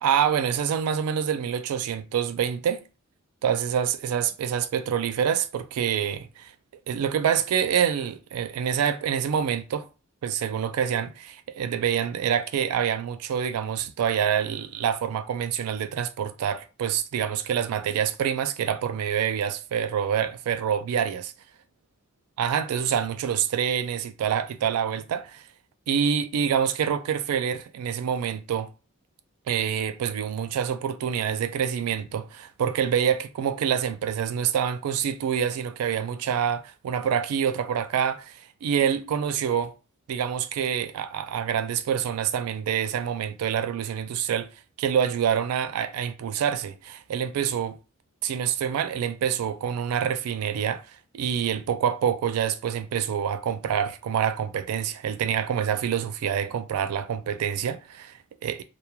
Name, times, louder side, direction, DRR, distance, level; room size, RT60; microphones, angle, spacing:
voice 1, 0.0-2.8 3.4-6.5 6.9-9.9 10.2-21.3 22.4-25.4 25.9-28.7 29.5-39.7 40.1-44.5 44.8-47.8 48.2-58.6, right 8 dB, 90° right, 0.3 m, -26 dB
2.9 x 2.2 x 2.2 m
head